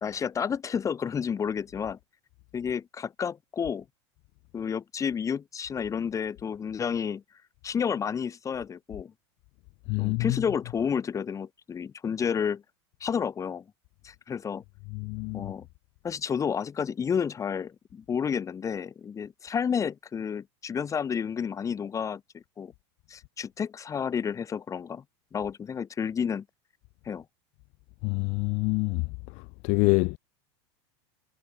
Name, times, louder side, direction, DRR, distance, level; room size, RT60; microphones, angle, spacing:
voice 1, 0.0-2.0 2.5-3.8 4.5-7.2 7.6-9.1 10.0-12.6 13.0-13.6 14.0-14.6 15.3-15.7 16.0-22.7 23.1-25.0 25.3-26.4 27.0-27.2, left 7 dB, 20° left, 1.2 m, -31 dB
voice 2, 9.9-10.3 14.9-15.5 28.0-29.0 29.6-30.2, left 32 dB, 50° left, 0.4 m, -26 dB
supercardioid pair, 120°, 15 cm